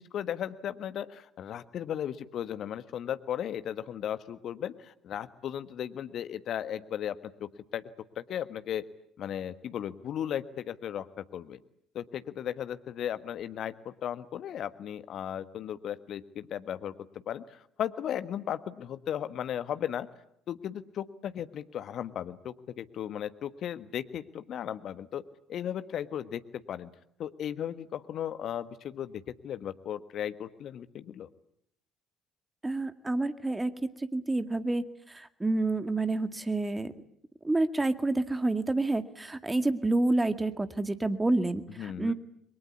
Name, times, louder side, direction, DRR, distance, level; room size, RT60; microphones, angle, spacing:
voice 1, 0.0-7.8 8.2-8.8 9.2-11.6 11.9-16.9 17.3-20.1 20.5-25.2 25.5-26.9 27.2-31.3 41.8-42.1, left 10 dB, 55° left, 13 dB, 1.4 m, -36 dB
voice 2, 32.6-33.7 34.0-36.9 37.4-42.1, right 2 dB, 15° right, 10 dB, 2.1 m, -28 dB
29.5 x 23.0 x 8.4 m, 0.71 s
figure-of-eight pair, 55°, 0 cm